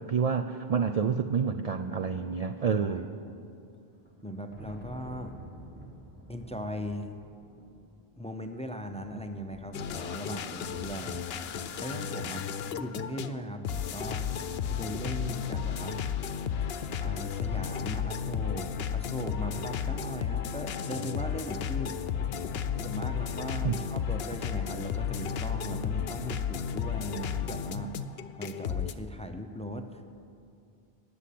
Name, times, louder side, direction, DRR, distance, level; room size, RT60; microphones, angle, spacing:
voice 1, 0.0-3.1 23.6-23.8, right 6 dB, 50° right, 7 dB, 0.5 m, -28 dB
Thunder, 3.9-13.3, right 1 dB, 10° right, 1.9 m, -50 dB
voice 2, 4.2-5.3 6.3-7.1 8.2-14.3 14.7-16.0 17.0-22.0 22.8-27.9 28.4-30.0, equal, 5° left, 7 dB, 0.6 m, -39 dB
sound 1, 9.7-28.9, left 7 dB, 75° left, 0.9 m, -33 dB
19.0 x 7.1 x 8.5 m, 2.5 s
omnidirectional pair, 1.0 m